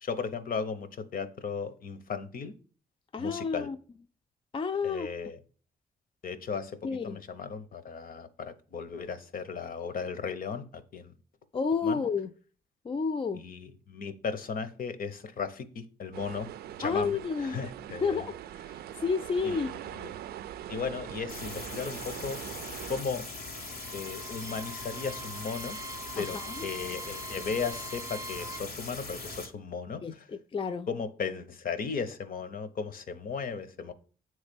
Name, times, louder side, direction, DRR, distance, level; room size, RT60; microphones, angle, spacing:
voice 1, 0.0-2.5 3.2-3.7 4.8-5.4 6.2-11.1 11.8-12.0 13.4-16.5 16.8-17.1 17.4-18.3 19.4-20.1 20.7-22.4 22.9-23.3 23.9-25.8 26.2-30.3 30.9-33.9, left 5 dB, 65° left, 0.9 m, -36 dB
voice 2, 3.1-3.8 4.5-5.1 6.8-7.2 11.5-12.3 12.8-13.4 16.8-17.6 18.0-18.4 19.0-19.7 26.1-26.7 30.0-30.9, left 5 dB, 35° left, 0.5 m, -30 dB
sound 1, 16.1-23.0, right 11 dB, 85° right, 0.4 m, -42 dB
sound 2, 21.3-29.5, left 2 dB, 85° left, 2.0 m, -41 dB
Bowed string instrument, 23.7-28.7, right 2 dB, 20° right, 0.5 m, -44 dB
7.8 x 3.2 x 5.2 m
cardioid pair, 65°, 16 cm